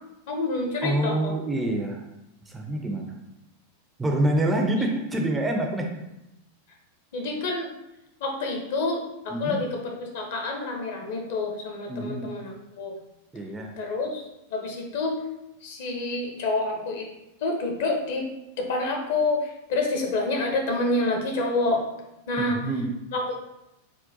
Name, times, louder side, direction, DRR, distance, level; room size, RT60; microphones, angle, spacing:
voice 1, 0.3-1.4 7.1-7.7 8.2-13.0 13.8-14.2 14.5-15.2 15.6-17.1 17.4-18.3 18.6-21.8 22.3-22.6 23.1-23.4, left 2 dB, 55° left, 1 dB, 0.6 m, -28 dB
voice 2, 0.8-2.0 2.4-3.2 4.0-5.9 9.3-9.6 11.9-12.3 13.3-13.7 22.4-22.9, right 1 dB, 10° right, 2 dB, 0.4 m, -26 dB
3.7 x 2.1 x 2.6 m, 0.90 s
figure-of-eight pair, 90°, 0 cm